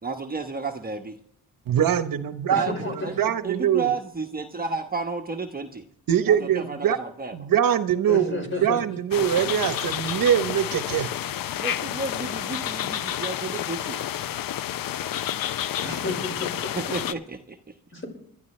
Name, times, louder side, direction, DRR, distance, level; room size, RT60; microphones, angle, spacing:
voice 1, 0.0-1.2 2.6-5.8 6.2-7.5 11.6-14.0 16.5-17.7, right 4 dB, 25° right, 4 dB, 1.1 m, -32 dB
voice 2, 1.7-4.0 6.1-7.0 7.3-11.1, right 9 dB, 65° right, 11 dB, 1.0 m, -23 dB
voice 3, 8.1-8.8 15.8-16.7 17.9-18.1, left 3 dB, 30° left, 3 dB, 5.0 m, -31 dB
sound 1, 9.1-17.1, left 11 dB, 65° left, 0.7 m, -30 dB
21.5 x 12.0 x 3.2 m, 0.66 s
cardioid pair, 75°, 37 cm